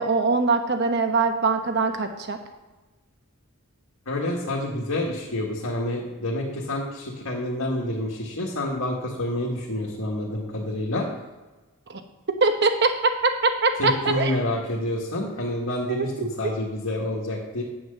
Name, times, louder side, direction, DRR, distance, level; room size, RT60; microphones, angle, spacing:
voice 1, 0.0-2.4 11.9-12.0 12.4-14.3 15.9-16.5, right 3 dB, 50° right, 6 dB, 1.0 m, -23 dB
voice 2, 4.1-11.0 13.8-16.1 16.4-17.6, left 1 dB, 80° left, -3 dB, 1.7 m, -28 dB
9.3 x 6.2 x 6.7 m, 1.2 s
head